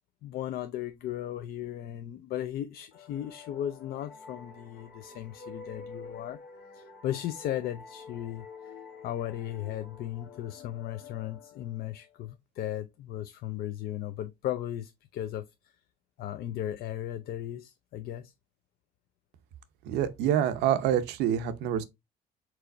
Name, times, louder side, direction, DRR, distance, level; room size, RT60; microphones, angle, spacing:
voice 1, 0.2-6.4 6.7-8.7 9.0-15.7 16.2-18.3, left 12 dB, 65° left, 0.4 m, -36 dB
sound 1, 2.9-12.3, left 4 dB, 80° left, 1.1 m, -49 dB
voice 2, 19.8-21.8, right 10 dB, 85° right, 0.7 m, -26 dB
4.7 x 3.9 x 2.6 m
cardioid pair, 110°, 17 cm